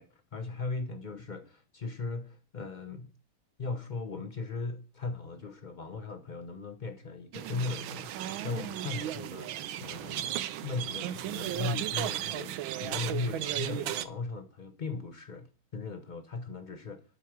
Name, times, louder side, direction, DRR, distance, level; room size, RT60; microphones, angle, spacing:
voice 1, 0.0-3.1 3.6-9.5 9.8-17.0, left 3 dB, 75° left, 0.4 m, -38 dB
sound 1, 7.3-14.1, right 12 dB, 90° right, 1.5 m, -35 dB
12.0 x 4.7 x 6.0 m
omnidirectional pair, 2.1 m